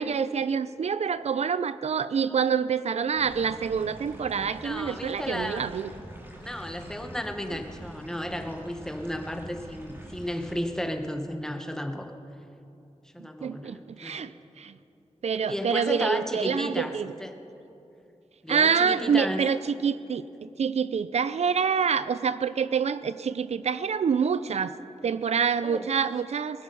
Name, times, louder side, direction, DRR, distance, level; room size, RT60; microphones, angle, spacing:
voice 1, 0.0-5.9 13.4-14.3 14.6-14.7 15.2-17.1 18.5-24.7 25.0-26.6, right 6 dB, 70° right, 14 dB, 0.4 m, -26 dB
sound 1, 3.2-10.6, equal, 20° right, 2.5 m, -45 dB
voice 2, 4.6-5.8 6.4-12.1 13.1-14.3 15.4-17.4 18.4-19.5 25.6-25.9, equal, 5° left, 5 dB, 1.1 m, -33 dB
20.0 x 13.0 x 5.5 m, 2.8 s
wide cardioid pair, 115°, 11 cm